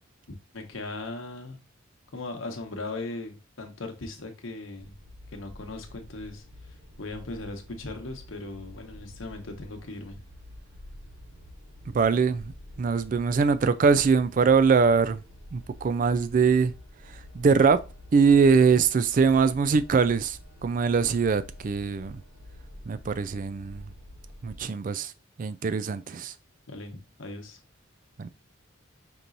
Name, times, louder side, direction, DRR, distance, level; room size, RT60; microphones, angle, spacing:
voice 1, 0.5-1.6 2.1-4.9 5.3-6.4 7.0-10.2 26.7-27.6, left 2 dB, 80° left, 1.0 m, -38 dB
sound 1, 4.8-24.6, left 1 dB, 80° right, 1.5 m, -47 dB
voice 2, 11.9-12.5 12.8-15.2 15.5-16.7 17.3-17.8 18.1-22.2 22.9-23.8 24.4-25.1 25.4-26.3 28.2-28.3, right 5 dB, 40° right, 0.3 m, -22 dB
5.2 x 2.9 x 2.5 m
head